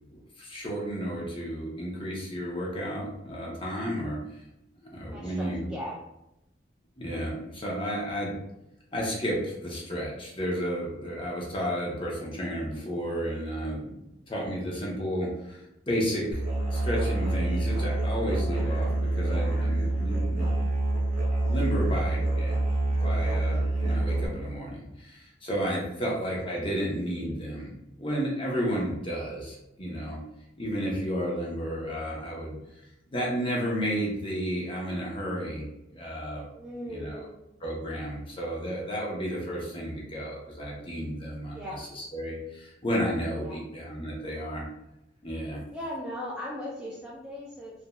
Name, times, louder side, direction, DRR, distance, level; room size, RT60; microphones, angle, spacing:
voice 1, 0.1-4.2 4.9-5.7 7.0-8.3 8.9-13.9 14.3-16.4 16.7-20.5 21.5-22.6 23.0-30.2 30.6-32.6 33.1-35.6 35.9-36.4 36.9-37.2 37.6-44.6 45.2-45.6, equal, 30° left, -3 dB, 0.8 m, -32 dB
voice 2, 5.1-6.0 25.9-26.2 36.5-37.4 41.5-41.8 43.4-43.6 45.7-47.7, left 1 dB, 5° right, -6 dB, 0.4 m, -38 dB
Musical instrument, 16.3-24.3, right 2 dB, 40° right, 0.9 m, -27 dB
3.0 x 2.6 x 2.2 m, 0.87 s
head